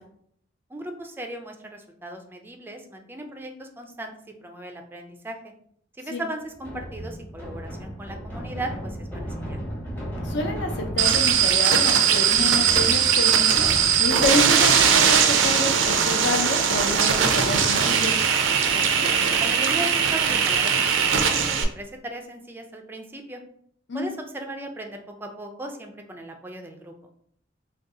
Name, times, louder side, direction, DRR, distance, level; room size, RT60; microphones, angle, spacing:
voice 1, 0.7-4.1 4.4-5.4 6.0-9.6 18.7-19.1 19.4-23.4 23.9-26.9, right 1 dB, 10° right, 4 dB, 0.3 m, -37 dB
sound 1, 6.6-14.3, equal, 10° left, 0.7 m, -35 dB
voice 2, 10.2-13.7 14.0-18.2 23.9-24.1, left 2 dB, 65° left, 3 dB, 0.6 m, -28 dB
sound 2, 11.0-21.6, right 7 dB, 80° right, 0.4 m, -20 dB
2.6 x 2.3 x 3.7 m, 0.66 s
head